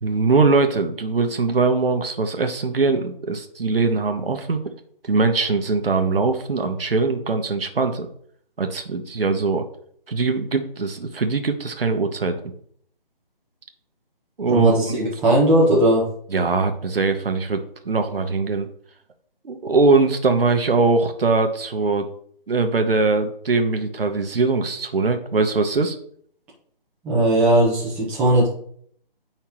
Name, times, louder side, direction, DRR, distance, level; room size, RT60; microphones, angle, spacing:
voice 1, 0.0-4.6 5.0-8.1 8.6-9.6 10.1-12.4 14.4-15.1 16.3-17.6 17.8-18.7 19.4-22.1 22.5-25.9, right 3 dB, 75° right, 6 dB, 1.2 m, -21 dB
voice 2, 14.5-16.0 27.0-28.5, right 1 dB, 5° right, -7 dB, 1.1 m, -18 dB
9.1 x 5.6 x 3.0 m, 0.62 s
figure-of-eight pair, 160°, 29 cm